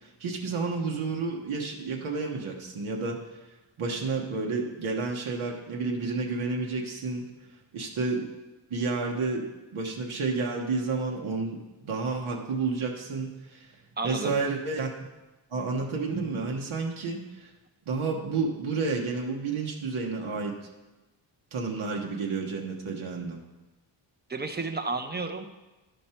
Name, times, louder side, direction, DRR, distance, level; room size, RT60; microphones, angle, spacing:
voice 1, 0.0-3.2 3.8-7.3 7.7-8.3 8.7-13.7 14.0-14.9 15.5-17.5 17.9-20.6 21.5-23.4, right 4 dB, 80° right, 0 dB, 1.2 m, -30 dB
voice 2, 14.0-14.3 24.3-25.5, right 3 dB, 20° right, 6 dB, 0.5 m, -31 dB
12.0 x 5.3 x 4.4 m, 1.1 s
wide cardioid pair, 165°, 47 cm